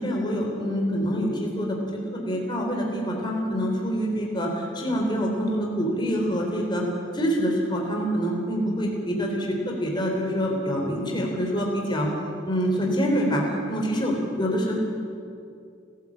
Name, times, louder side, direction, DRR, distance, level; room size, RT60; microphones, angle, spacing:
voice 1, 0.0-6.8 7.1-12.1 12.5-14.8, equal, 20° left, 0 dB, 3.6 m, -26 dB
30.0 x 14.0 x 8.6 m, 2.5 s
head